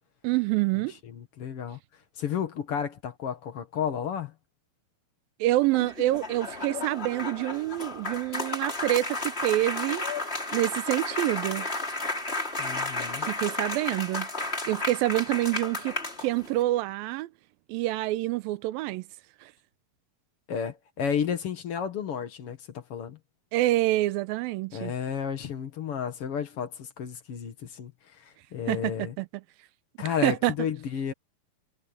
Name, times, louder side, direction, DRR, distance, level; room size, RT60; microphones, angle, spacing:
voice 1, 0.2-0.9 5.4-10.1 10.5-12.0 13.2-14.3 14.7-17.3 17.7-19.0 19.4-19.5 23.5-24.9 28.7-29.3 30.2-30.5, right 17 dB, 90° right, 2.4 m, -27 dB
voice 2, 1.1-1.8 2.2-4.3 12.6-13.3 20.5-23.2 24.7-27.9 28.2-29.1 30.0-31.1, left 7 dB, 50° left, 2.1 m, -32 dB
sound 1, 5.6-16.6, left 2 dB, 15° left, 4.3 m, -33 dB
omnidirectional pair, 4.2 m